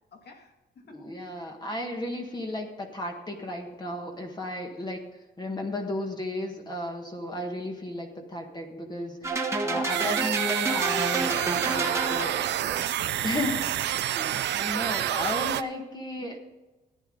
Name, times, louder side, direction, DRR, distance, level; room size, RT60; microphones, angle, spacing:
voice 1, 0.1-1.0 11.6-12.3 12.6-13.6 13.9-14.5, left 4 dB, 60° left, 3 dB, 2.3 m, -48 dB
voice 2, 0.9-5.0 5.4-12.4 13.2-16.4, left 1 dB, 20° left, 2 dB, 1.6 m, -34 dB
sound 1, 9.2-12.7, right 3 dB, 15° right, 1.4 m, -29 dB
sound 2, 9.9-15.6, right 12 dB, 70° right, 0.6 m, -28 dB
14.5 x 10.5 x 3.9 m, 1.1 s
cardioid pair, 150°, 19 cm